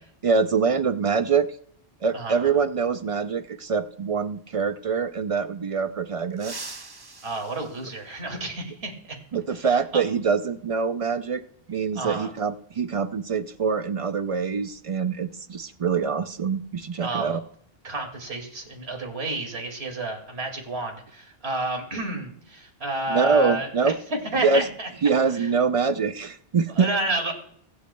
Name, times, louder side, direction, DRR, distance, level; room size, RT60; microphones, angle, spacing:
voice 1, 0.2-1.5 2.0-6.6 9.3-11.4 11.7-17.4 23.1-24.0 24.4-24.6 25.0-26.9, right 5 dB, 55° right, 11 dB, 0.3 m, -24 dB
voice 2, 2.1-2.5 7.2-9.2 9.5-10.0 11.9-12.3 17.0-17.4 17.8-24.9 25.3-25.5 26.7-27.3, right 2 dB, 75° right, 3 dB, 2.4 m, -30 dB
sound 1, 6.3-8.7 10.4-10.5 11.7-11.8 13.4-13.6 13.9-14.2 14.6-16.8 17.1-17.3 17.8-18.2, right 3 dB, 25° right, 0.7 m, -44 dB
23.5 x 8.3 x 2.2 m, 0.65 s
omnidirectional pair, 1.1 m